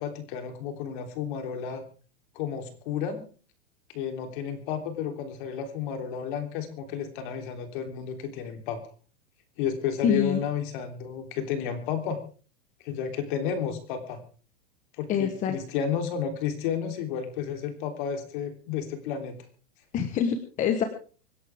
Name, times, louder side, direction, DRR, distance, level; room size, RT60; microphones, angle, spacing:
voice 1, 0.0-1.9 2.4-3.2 3.9-8.8 9.6-12.2 12.8-14.2 15.0-19.4, left 7 dB, 45° left, 6 dB, 3.5 m, -32 dB
voice 2, 10.0-10.4 15.1-15.6 19.9-20.8, left 7 dB, 20° left, 7 dB, 1.3 m, -25 dB
25.5 x 11.0 x 3.6 m, 0.39 s
supercardioid pair, 160°, 34 cm